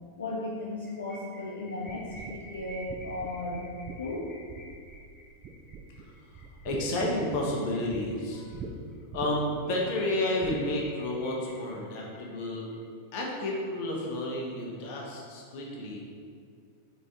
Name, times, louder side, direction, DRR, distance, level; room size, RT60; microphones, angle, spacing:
voice 1, 0.2-3.7 4.0-4.3, left 2 dB, 70° left, -4 dB, 0.5 m, -35 dB
sound 1, 0.6-8.5 8.9-9.0 9.3-9.4 9.6-12.7, equal, 15° left, 1.0 m, -51 dB
sound 2, 1.9-5.1 5.4-6.0 6.3-8.0 8.5-8.7 9.1-9.6 10.4-10.7, right 6 dB, 30° right, 0.4 m, -42 dB
voice 2, 6.6-8.6 9.1-12.7 13.1-16.0, left 1 dB, 50° left, -2 dB, 0.9 m, -31 dB
4.0 x 3.7 x 3.4 m, 2.2 s
figure-of-eight pair, 90°, 0 cm